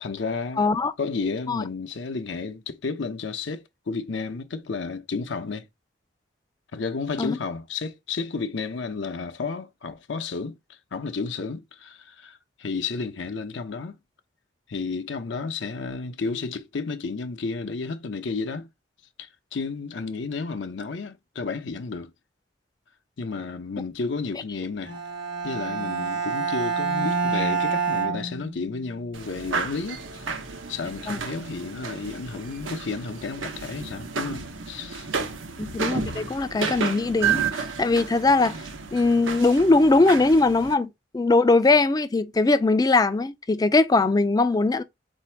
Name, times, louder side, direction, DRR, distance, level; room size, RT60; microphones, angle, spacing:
voice 1, 0.0-0.7 1.0-5.7 6.7-14.0 14.7-18.7 19.2-22.1 23.2-25.0 25.4-30.3 30.7-35.1, left 4 dB, 70° left, 0.6 m, -32 dB
voice 2, 0.6-0.9 1.5-1.6 7.2-7.4 31.1-31.2 35.6-38.6 38.9-44.8, left 3 dB, 20° left, 0.3 m, -21 dB
Bowed string instrument, 24.8-29.0, right 5 dB, 60° right, 1.2 m, -27 dB
sound 1, 29.1-40.7, right 5 dB, 85° right, 0.8 m, -32 dB
4.1 x 2.6 x 4.4 m
head